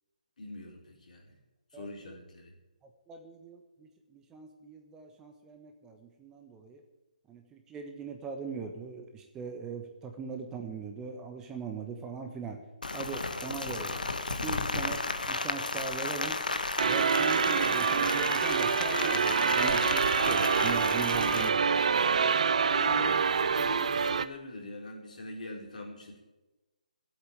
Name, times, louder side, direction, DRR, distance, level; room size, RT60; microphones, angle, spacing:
voice 1, 0.4-1.4 1.7-2.5 22.7-26.2, left 2 dB, 65° left, 0 dB, 4.5 m, -43 dB
voice 2, 1.7-2.2 3.1-6.8 7.3-12.6 12.9-14.1 14.4-16.4 16.8-21.9, right 5 dB, 10° right, 4 dB, 1.2 m, -41 dB
Rain, 12.8-21.5, left 3 dB, 85° left, 1.5 m, -33 dB
sound 1, 16.8-24.2, right 6 dB, 55° right, 0.7 m, -26 dB
12.5 x 8.5 x 8.7 m, 1.1 s
figure-of-eight pair, 150°, 4 cm